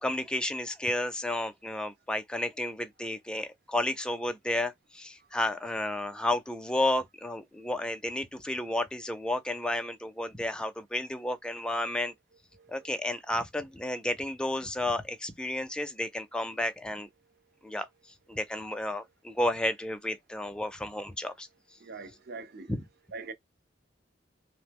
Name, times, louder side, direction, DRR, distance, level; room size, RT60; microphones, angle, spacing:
voice 1, 0.0-12.1 12.7-17.1 17.6-17.9 18.3-21.5 22.7-22.8, left 1 dB, 5° left, 0.4 m, -32 dB
voice 2, 12.5-13.0 21.8-22.7 23.1-23.3, right 4 dB, 60° right, 0.6 m, -43 dB
2.9 x 2.0 x 3.4 m
head